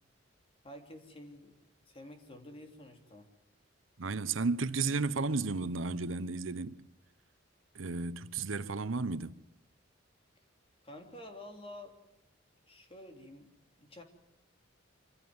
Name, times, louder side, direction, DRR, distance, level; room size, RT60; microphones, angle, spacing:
voice 1, 0.6-1.6 1.9-3.3 10.8-12.0 12.7-14.0, left 1 dB, 30° left, 3.2 m, -50 dB
voice 2, 4.0-6.9 7.7-9.4, right 3 dB, 90° right, 0.9 m, -33 dB
26.0 x 16.0 x 9.6 m
head